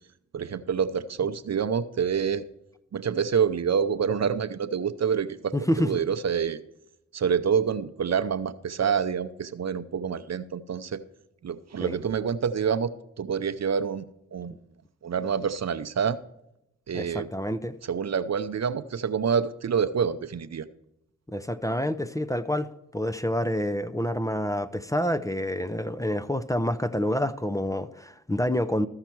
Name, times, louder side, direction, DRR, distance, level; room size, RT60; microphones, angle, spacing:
voice 1, 0.3-2.4 2.9-6.6 7.1-11.0 11.4-14.0 14.3-14.6 15.0-16.2 16.9-17.3 17.9-20.7, right 7 dB, 55° right, 0.7 m, -27 dB
voice 2, 5.5-6.0 11.8-11.9 16.9-17.7 21.3-22.7 22.9-28.9, left 1 dB, 10° left, 0.6 m, -28 dB
14.5 x 5.8 x 4.6 m
cardioid pair, 45°, 32 cm